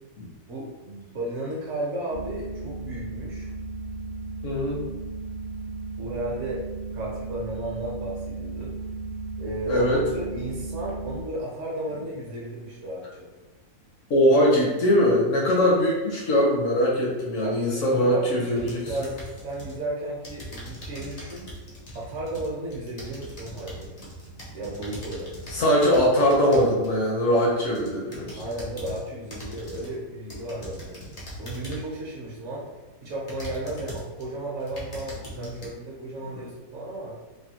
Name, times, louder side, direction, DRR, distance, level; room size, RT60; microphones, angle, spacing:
voice 1, 0.5-3.5 6.0-6.6 6.9-8.7 9.4-13.3 17.4-19.1 19.4-21.5 21.9-24.0 24.5-25.3 28.4-31.0 31.4-32.6 33.0-37.1, right 1 dB, 55° right, -4 dB, 1.0 m, -34 dB
sound 1, 2.1-11.2, right 3 dB, 80° right, 0.4 m, -35 dB
voice 2, 4.4-4.8 9.7-10.0 14.1-18.9 25.5-28.4 35.4-35.5 36.2-36.4, equal, 60° left, -3 dB, 0.9 m, -22 dB
sound 2, 18.6-19.8 20.2-27.0 27.5-29.0 29.3-29.9 30.3-32.0 32.6-32.7 33.3-34.2 34.6-35.7, equal, 45° left, 0.5 m, -40 dB
3.4 x 2.2 x 2.8 m, 1.1 s
omnidirectional pair, 1.7 m